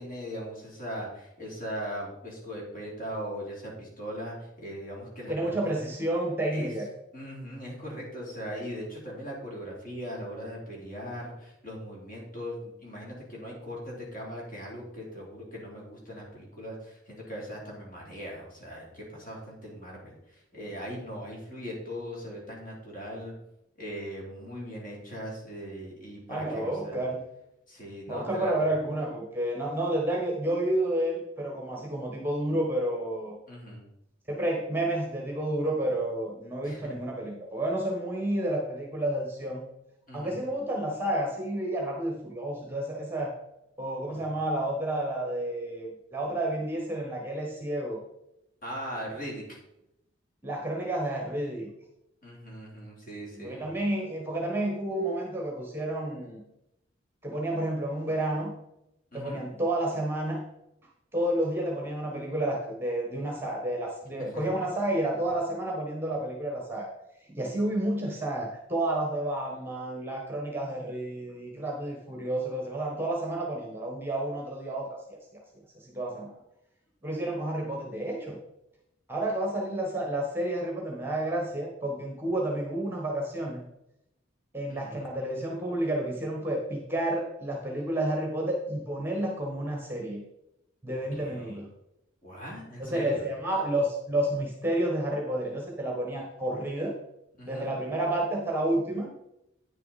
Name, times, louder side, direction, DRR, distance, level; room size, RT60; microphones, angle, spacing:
voice 1, 0.0-5.8 6.5-6.7 7.1-23.3 23.8-27.0 27.7-28.6 33.5-33.9 36.6-36.9 40.1-40.4 48.6-49.6 52.2-53.6 59.1-59.4 84.7-85.0 90.9-91.6 92.2-93.2 97.4-97.7, equal, 45° left, -3 dB, 3.2 m, -39 dB
voice 2, 5.3-6.9 26.3-27.2 28.1-33.4 34.3-39.6 40.1-43.3 43.8-48.0 50.4-51.7 53.3-56.4 57.2-58.5 59.1-60.4 61.1-66.9 67.3-75.2 75.7-76.3 77.0-78.4 79.1-83.6 84.5-90.2 90.8-91.7 92.8-97.0 97.5-99.1, right 1 dB, 10° right, 0 dB, 1.2 m, -30 dB
9.4 x 6.6 x 4.1 m, 0.85 s
head